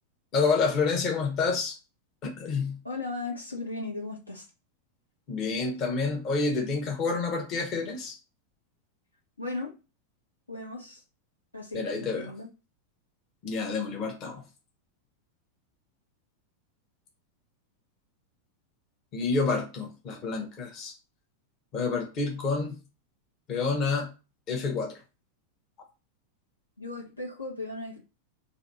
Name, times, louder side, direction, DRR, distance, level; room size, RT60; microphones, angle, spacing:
voice 1, 0.3-1.7 2.2-2.8 5.3-8.2 11.7-12.3 13.4-14.4 19.1-20.9 21.7-22.7 23.5-24.1 24.5-25.0, left 4 dB, 35° left, 1.1 m, -28 dB
voice 2, 2.8-4.5 9.4-9.7 10.5-11.0 11.5-12.5 26.8-28.0, left 2 dB, 80° left, 1.5 m, -36 dB
4.1 x 2.7 x 4.1 m
figure-of-eight pair, 90°, 0 cm